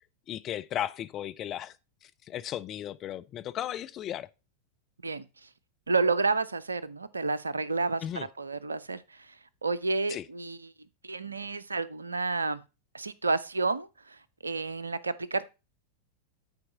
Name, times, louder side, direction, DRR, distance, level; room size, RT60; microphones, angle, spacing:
voice 1, 0.3-1.8 2.0-4.3 8.0-8.3 10.1-10.2, left 11 dB, 30° left, 0.5 m, -35 dB
voice 2, 5.0-5.5 5.9-10.7 11.0-12.6 12.9-15.5, right 3 dB, 75° right, 0.5 m, -30 dB
9.6 x 4.6 x 4.0 m
figure-of-eight pair, 90°, 0 cm